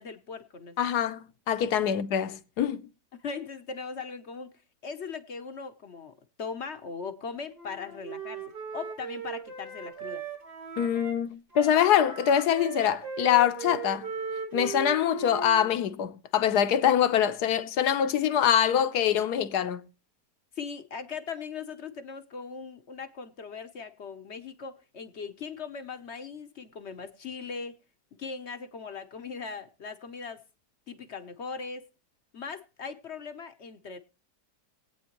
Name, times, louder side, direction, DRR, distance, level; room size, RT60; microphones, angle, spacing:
voice 1, 0.0-0.8 3.1-4.5 4.8-8.4 8.7-10.2 20.6-27.8 28.1-30.4 30.9-31.9 32.3-34.0, left 5 dB, 50° left, 0.9 m, -39 dB
voice 2, 0.8-2.8 10.8-14.1 14.5-19.8, left 9 dB, 70° left, 1.3 m, -24 dB
Wind instrument woodwind instrument, 7.6-11.2 11.5-15.7, right 6 dB, 65° right, 3.1 m, -38 dB
22.0 x 8.7 x 3.0 m
omnidirectional pair, 1.8 m